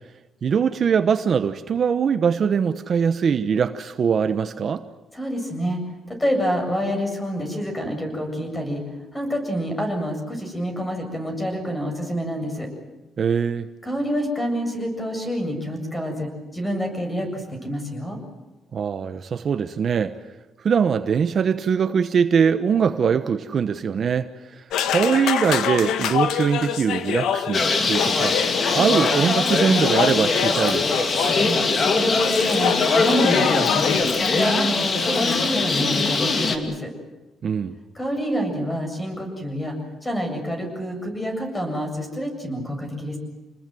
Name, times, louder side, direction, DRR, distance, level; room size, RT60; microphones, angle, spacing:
voice 1, 0.4-4.8 13.2-13.7 18.7-20.1 20.6-28.4 28.7-31.0 37.4-37.7, right 6 dB, 45° right, 9 dB, 1.0 m, -22 dB
voice 2, 5.1-8.8 9.1-12.7 13.8-18.2 31.3-31.6 31.9-34.0 34.3-36.9 38.0-39.8 40.0-43.2, equal, 15° left, 4 dB, 7.6 m, -27 dB
sound 1, 24.7-34.0, left 8 dB, 85° left, 1.6 m, -26 dB
Bird, 27.5-36.6, left 3 dB, 35° left, 2.8 m, -22 dB
28.0 x 20.5 x 7.8 m, 1.1 s
cardioid pair, 120°, 0 cm